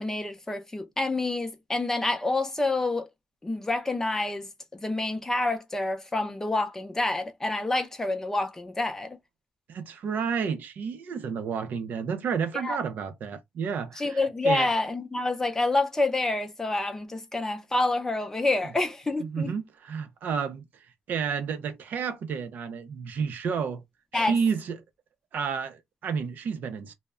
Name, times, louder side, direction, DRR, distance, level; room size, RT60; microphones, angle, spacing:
voice 1, 0.0-3.1 3.4-9.2 12.6-12.8 14.0-19.5 24.1-24.4, left 2 dB, 15° left, 0.5 m, -28 dB
voice 2, 9.7-14.7 19.2-23.8 24.1-24.8 25.3-26.9, right 6 dB, 65° right, 0.5 m, -31 dB
2.1 x 2.0 x 3.5 m
cardioid pair, 125°, 3 cm